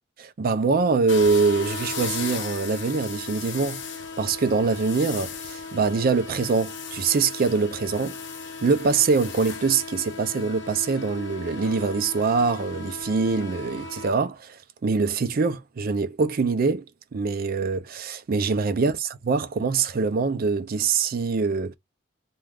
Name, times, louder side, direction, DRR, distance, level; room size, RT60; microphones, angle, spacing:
voice 1, 0.2-3.8 4.2-8.2 8.6-16.9 17.1-21.7, right 4 dB, 50° right, 0.4 m, -24 dB
sound 1, 1.1-14.1, left 4 dB, 65° left, 0.6 m, -36 dB
2.4 x 2.2 x 3.3 m
head